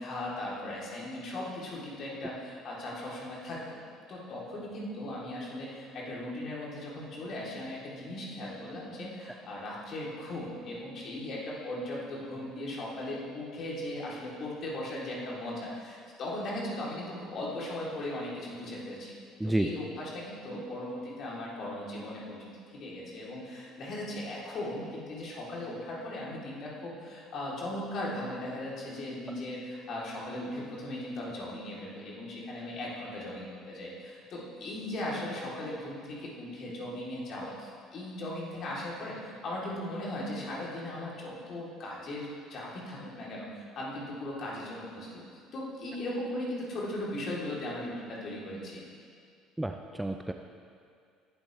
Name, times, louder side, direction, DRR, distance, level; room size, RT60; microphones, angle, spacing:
voice 1, 0.0-3.6 4.1-19.1 19.4-45.2 45.5-48.8, left 1 dB, 45° left, -4 dB, 3.6 m, -38 dB
voice 2, 49.6-50.3, right 1 dB, 5° right, 5 dB, 0.7 m, -30 dB
19.5 x 11.5 x 3.4 m, 2.3 s
figure-of-eight pair, 55°, 0 cm